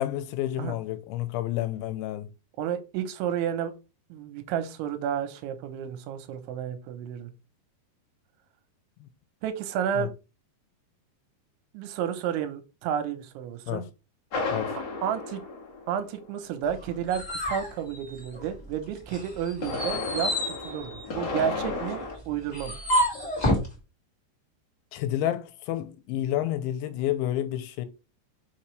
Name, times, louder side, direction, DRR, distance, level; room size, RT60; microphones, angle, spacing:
voice 1, 0.0-2.3 9.0-9.1 10.0-10.1 13.7-13.9 14.5-14.7 24.9-27.9, left 12 dB, 90° left, 3.1 m, -30 dB
voice 2, 2.6-3.7 4.1-7.3 9.4-10.1 11.7-13.8 15.0-15.4 15.9-22.8, right 9 dB, 85° right, 3.3 m, -31 dB
sound 1, 14.3-16.4 19.3-22.1, left 3 dB, 60° left, 1.1 m, -33 dB
sound 2, 16.7-18.7 19.1-23.7, equal, 15° left, 1.3 m, -30 dB
6.5 x 5.7 x 3.2 m
omnidirectional pair, 5.3 m